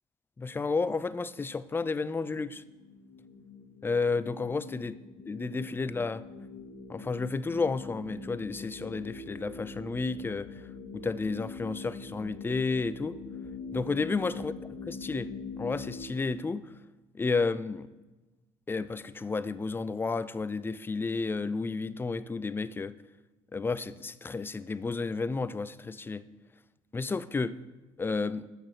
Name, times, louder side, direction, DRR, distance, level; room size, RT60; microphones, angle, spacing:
voice 1, 0.4-2.6 3.8-4.9 5.3-6.2 6.9-10.5 10.9-13.2 13.7-14.5 14.9-15.3 15.6-16.7 17.1-17.9 18.7-22.9 23.5-26.2 26.9-27.6 28.0-28.4, left 4 dB, 15° left, 0.4 m, -31 dB
sound 1, 2.5-16.1, left 3 dB, 80° left, 2.2 m, -43 dB
9.0 x 6.3 x 6.7 m
supercardioid pair, 90°, 13 cm